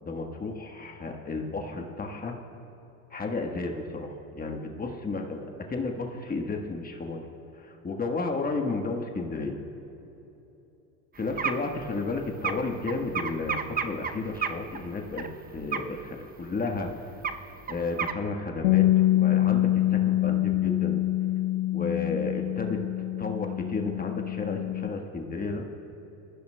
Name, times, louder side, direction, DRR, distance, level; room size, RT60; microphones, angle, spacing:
voice 1, 0.0-2.3 3.1-7.3 7.5-9.5 11.2-15.2 15.5-17.1 17.7-21.1 21.7-22.8 23.2-25.7, left 3 dB, 20° left, 2 dB, 1.3 m, -32 dB
sound 1, 11.2-15.3 15.6-16.1 16.5-16.6 16.8-16.9 17.2-18.1, right 6 dB, 20° right, 0.7 m, -32 dB
Bass guitar, 18.6-24.9, left 15 dB, 80° left, 0.6 m, -25 dB
22.5 x 14.5 x 2.2 m, 3.0 s
hypercardioid pair, 85°, 41 cm